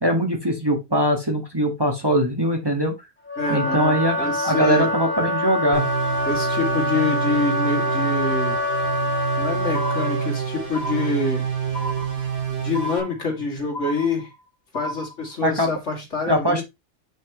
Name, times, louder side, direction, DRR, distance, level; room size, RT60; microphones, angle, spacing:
voice 1, 0.0-2.9 3.5-5.8 15.4-15.7 16.3-16.6, equal, 20° right, 2 dB, 1.9 m, -21 dB
Wind instrument woodwind instrument, 3.3-10.3, left 1 dB, 10° left, 2.2 m, -25 dB
voice 2, 3.4-4.9 6.2-8.6 9.4-11.5 12.6-14.3 14.7-16.6, left 4 dB, 80° left, 1 dB, 3.0 m, -26 dB
sound 1, 5.7-13.0, right 8 dB, 75° right, 2.5 m, -27 dB
sound 2, 9.7-10.4 10.7-11.4 11.7-12.4 12.7-13.4 13.7-14.4 14.7-15.4, equal, 65° left, 2.6 m, -33 dB
8.9 x 5.9 x 3.1 m, 0.21 s
omnidirectional pair, 1.2 m